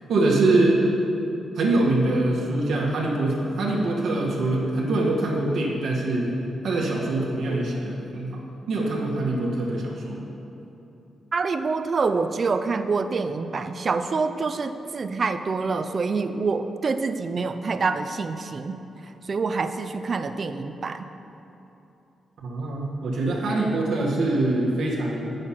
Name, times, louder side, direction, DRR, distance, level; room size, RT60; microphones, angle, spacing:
voice 1, 0.1-0.8 1.5-6.4 6.6-8.4 8.7-10.3 22.4-25.4, right 2 dB, 75° right, -3 dB, 1.4 m, -24 dB
voice 2, 11.3-18.8 19.3-21.1, right 4 dB, 45° right, 10 dB, 0.5 m, -26 dB
7.9 x 6.5 x 5.7 m, 2.9 s
cardioid pair, 85°, 0 cm